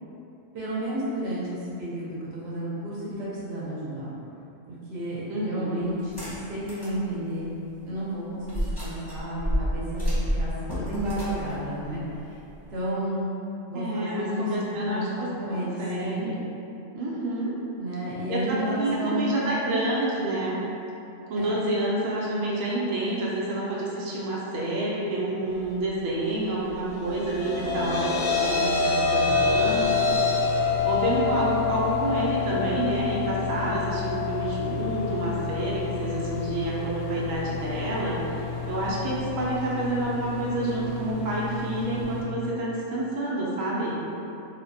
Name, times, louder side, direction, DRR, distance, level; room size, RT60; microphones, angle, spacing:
voice 1, 0.5-4.2 4.7-6.2 6.5-7.5 7.8-12.0 12.3-12.4 12.7-13.3 13.7-16.3 17.8-19.8 21.4-21.5, right 1 dB, 60° right, -7 dB, 0.9 m, -32 dB
voice 2, 5.3-5.9 13.7-16.4 16.9-17.6 18.3-20.6 21.3-29.9 30.8-44.0, right 1 dB, 85° right, -6 dB, 1.0 m, -28 dB
sound 1, 6.0-7.0 7.4-7.5 8.5-12.7, equal, 25° left, 0.6 m, -30 dB
sound 2, 26.9-39.3, left 5 dB, 90° left, 1.0 m, -27 dB
Bathroom Fan, 29.3-42.2, left 4 dB, 60° left, 0.7 m, -35 dB
3.3 x 2.1 x 2.5 m, 2.8 s
omnidirectional pair, 1.3 m